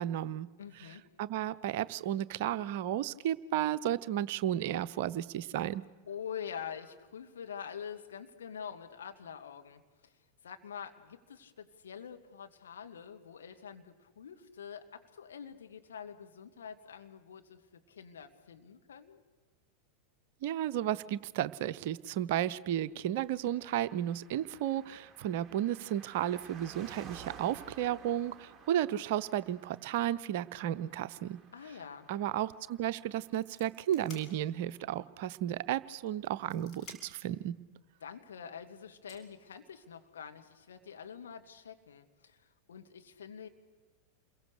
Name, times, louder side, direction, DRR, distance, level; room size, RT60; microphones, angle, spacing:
voice 1, 0.0-0.5 1.2-5.8 20.4-31.4 32.1-37.5, right 11 dB, 50° right, 15 dB, 0.7 m, -33 dB
voice 2, 0.6-1.1 6.1-10.1 10.4-19.2 31.5-32.1 38.0-43.5, left 7 dB, 65° left, 5 dB, 2.1 m, -46 dB
Car passing by, 23.3-35.2 35.4-35.5, right 5 dB, 15° right, 2.2 m, -55 dB
sound 1, 32.5-32.7 33.0-34.8 35.3-35.4 36.1-37.3 38.5-38.6 39.1-40.1, left 3 dB, 30° left, 5.9 m, -54 dB
28.5 x 22.5 x 6.7 m, 1.3 s
figure-of-eight pair, 90°, 0 cm